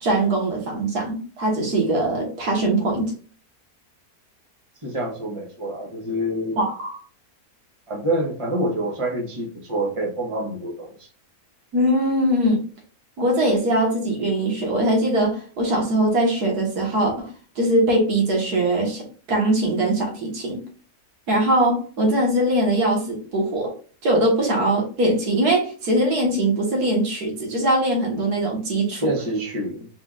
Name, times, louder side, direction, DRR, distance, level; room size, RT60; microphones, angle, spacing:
voice 1, 0.0-3.1 6.6-7.0 11.7-12.6 13.2-20.6 21.3-23.7 24.0-29.1, right 1 dB, 85° right, 0 dB, 2.0 m, -21 dB
voice 2, 4.8-6.6 7.9-11.1 29.0-29.9, right 1 dB, 20° right, -1 dB, 1.2 m, -26 dB
4.8 x 3.8 x 2.4 m, 0.40 s
omnidirectional pair, 1.6 m